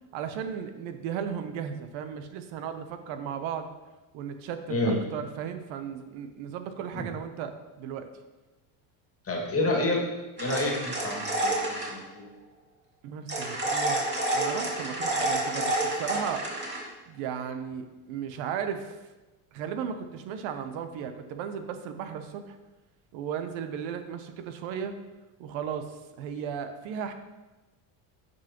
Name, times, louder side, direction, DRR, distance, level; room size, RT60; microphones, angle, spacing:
voice 1, 0.1-3.7 4.1-8.1 13.0-16.5 17.1-19.0 19.5-22.6 23.1-24.9 25.4-27.1, right 8 dB, 70° right, 8 dB, 0.8 m, -35 dB
voice 2, 9.3-10.0 10.4-12.3, left 2 dB, 30° left, -1 dB, 1.9 m, -29 dB
sound 1, 10.4-11.9 13.3-16.8, right 2 dB, 20° right, 2.1 m, -29 dB
9.3 x 5.3 x 2.9 m, 1.1 s
supercardioid pair, 95°, 49 cm